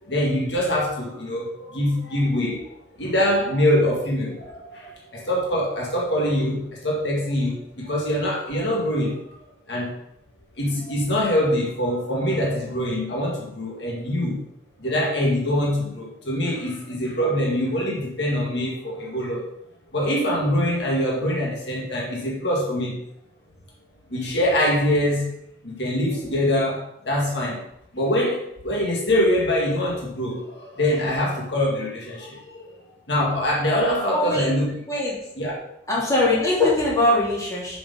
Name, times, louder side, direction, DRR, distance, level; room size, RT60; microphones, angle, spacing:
voice 1, 0.0-2.7 3.0-9.2 9.7-9.9 10.6-14.4 14.8-19.5 19.9-23.0 24.1-25.3 25.6-27.6 27.9-34.7 35.4-35.6, left 1 dB, 75° left, -2 dB, 1.9 m, -24 dB
voice 2, 34.1-34.5 34.9-35.2 35.9-37.8, left 2 dB, 20° left, -6 dB, 2.9 m, -21 dB
7.5 x 5.1 x 5.3 m, 0.79 s
head